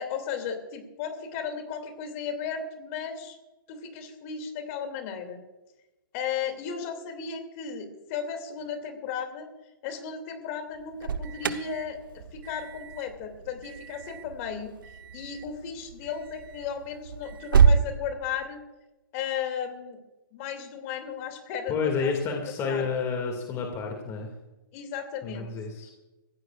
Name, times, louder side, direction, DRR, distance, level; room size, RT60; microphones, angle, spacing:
voice 1, 0.0-3.4 3.7-5.4 6.1-9.5 9.8-14.7 15.1-18.6 19.1-20.0 20.3-22.1 22.7-23.0 24.7-25.5, left 7 dB, 40° left, 5 dB, 2.7 m, -35 dB
Alarm, 10.7-17.8, right 6 dB, 70° right, 1.1 m, -28 dB
voice 2, 21.7-24.3 25.2-25.9, left 5 dB, 25° left, 2 dB, 2.3 m, -30 dB
23.5 x 16.0 x 2.5 m, 1.0 s
hypercardioid pair, 130°, 12 cm